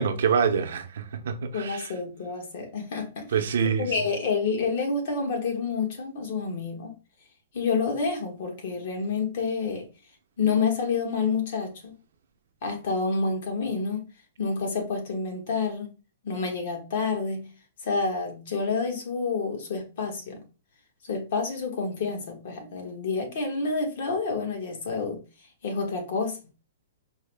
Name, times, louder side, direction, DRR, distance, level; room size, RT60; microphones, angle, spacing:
voice 1, 0.0-1.9 3.3-3.9, right 6 dB, 70° right, 0.6 m, -26 dB
voice 2, 1.5-3.3 3.8-6.9 7.5-9.9 10.4-11.9 12.6-14.0 14.4-15.9 16.2-17.5 17.8-20.4 21.0-25.2 25.6-26.4, left 4 dB, 55° left, 1.2 m, -28 dB
4.6 x 2.0 x 3.4 m
hypercardioid pair, 160°, 0 cm